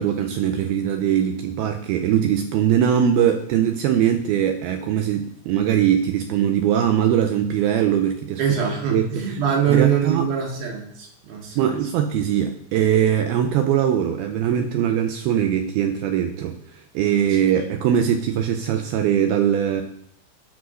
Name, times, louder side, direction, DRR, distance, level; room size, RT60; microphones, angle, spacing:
voice 1, 0.0-8.4 8.9-9.4 9.7-10.3 11.6-19.8, right 9 dB, 90° right, 6 dB, 2.2 m, -21 dB
voice 2, 8.4-11.7 17.3-17.4, right 7 dB, 60° right, 0 dB, 3.3 m, -23 dB
12.5 x 4.8 x 6.3 m, 0.68 s
omnidirectional pair, 5.1 m